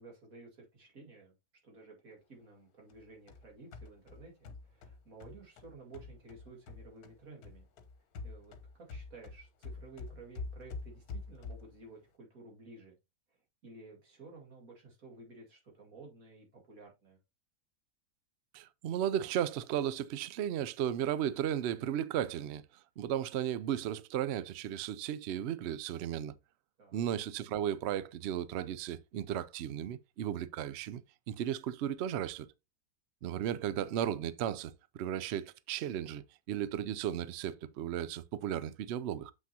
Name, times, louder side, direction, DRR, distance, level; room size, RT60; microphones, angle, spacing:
voice 1, 0.0-1.3 1.6-7.7 8.2-12.9 13.3-13.4 13.6-17.2 26.8-27.0, right 3 dB, 55° right, 2.5 m, -53 dB
sound 1, 2.9-7.2 7.4-11.8, left 3 dB, 70° left, 1.4 m, -46 dB
voice 2, 18.5-22.6 23.0-26.3 26.9-31.0 31.3-32.5 33.2-39.3, right 10 dB, 80° right, 0.6 m, -35 dB
7.6 x 5.9 x 2.8 m
omnidirectional pair, 1.7 m